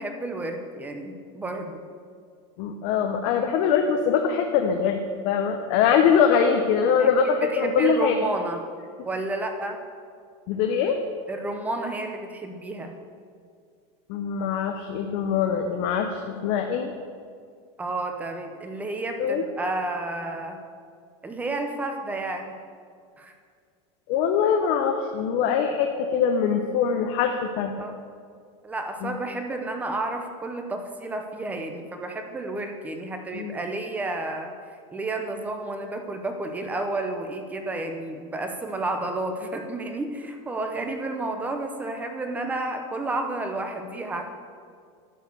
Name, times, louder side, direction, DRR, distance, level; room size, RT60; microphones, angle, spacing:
voice 1, 0.0-1.8 7.0-8.7 9.0-9.8 11.3-13.0 17.8-20.6 21.2-22.6 23.2-23.3 27.8-27.9 28.6-34.5 34.9-44.2, right 2 dB, 10° right, 5 dB, 0.7 m, -31 dB
voice 2, 2.6-5.0 5.2-8.2 10.5-11.0 14.1-16.9 19.2-19.4 24.1-27.7 29.0-29.1 33.3-33.6, left 7 dB, 50° left, 4 dB, 0.6 m, -23 dB
10.5 x 4.7 x 6.8 m, 2.1 s
supercardioid pair, 165°, 15 cm